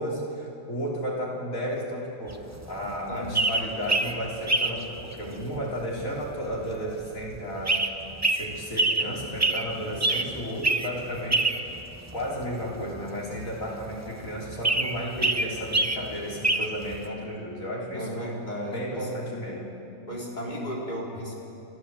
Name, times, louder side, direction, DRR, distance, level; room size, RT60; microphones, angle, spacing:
voice 1, 0.0-7.8 8.2-11.8 12.1-18.2 18.7-19.7, equal, 85° left, -4 dB, 4.0 m, -33 dB
sound 1, 2.3-17.0, right 2 dB, 15° right, 0.7 m, -27 dB
voice 2, 3.1-3.9 17.0-17.2 17.9-19.1 20.1-21.3, equal, 35° left, -4 dB, 4.3 m, -35 dB
29.5 x 12.5 x 7.6 m, 2.9 s
omnidirectional pair, 1.4 m